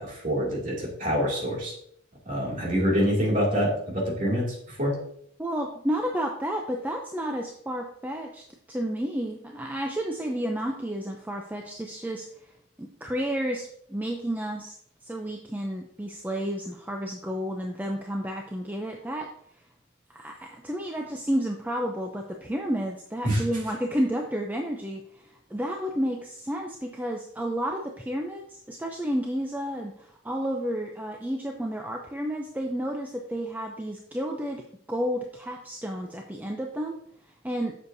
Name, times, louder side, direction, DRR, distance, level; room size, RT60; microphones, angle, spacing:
voice 1, 0.0-1.7 2.3-4.9 23.2-23.4, equal, 40° right, -4 dB, 2.4 m, -26 dB
voice 2, 5.4-12.5 12.8-14.7 15.0-19.3 20.1-37.8, equal, 10° right, 1 dB, 0.5 m, -31 dB
7.9 x 6.4 x 2.7 m, 0.69 s
head